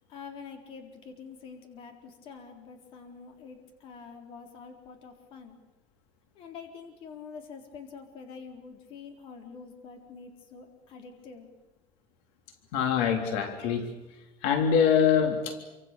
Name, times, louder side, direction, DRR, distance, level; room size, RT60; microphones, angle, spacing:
voice 1, 0.1-5.6 6.4-11.5, left 5 dB, 45° left, 4 dB, 4.0 m, -46 dB
voice 2, 12.7-13.9 14.4-15.6, left 7 dB, 85° left, 5 dB, 3.4 m, -24 dB
28.5 x 25.5 x 6.9 m, 1.1 s
cardioid pair, 175°, 13 cm